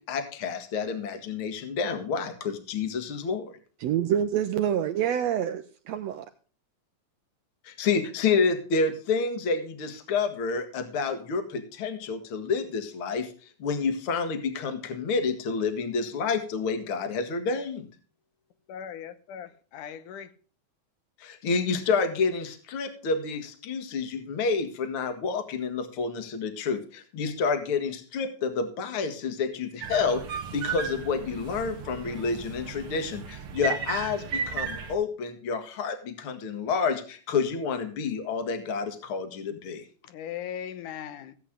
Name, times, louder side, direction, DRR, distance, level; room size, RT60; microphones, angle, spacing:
voice 1, 0.1-3.4 7.6-13.3 13.6-17.9 21.2-39.8, left 5 dB, 50° left, 2.2 m, -29 dB
voice 2, 3.8-6.3, right 9 dB, 75° right, 1.7 m, -27 dB
voice 3, 18.7-20.3 40.0-41.3, left 9 dB, 85° left, 2.6 m, -39 dB
sound 1, 29.8-34.9, right 6 dB, 55° right, 2.0 m, -35 dB
16.5 x 8.2 x 3.7 m
omnidirectional pair, 3.5 m